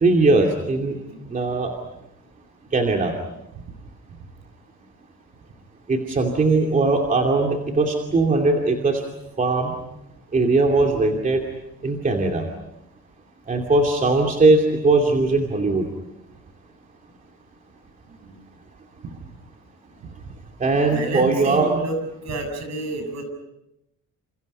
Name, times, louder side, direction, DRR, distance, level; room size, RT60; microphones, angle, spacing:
voice 1, 0.0-1.0 1.3-1.7 2.7-3.1 5.9-9.0 9.4-9.7 10.3-11.4 11.8-12.4 13.5-15.8 20.6-21.7, right 3 dB, 25° right, 1 dB, 2.7 m, -19 dB
voice 2, 18.1-18.4 20.9-22.0 22.2-23.2, right 2 dB, 60° right, 6 dB, 7.5 m, -30 dB
29.5 x 28.5 x 5.6 m, 0.84 s
cardioid pair, 170°, 31 cm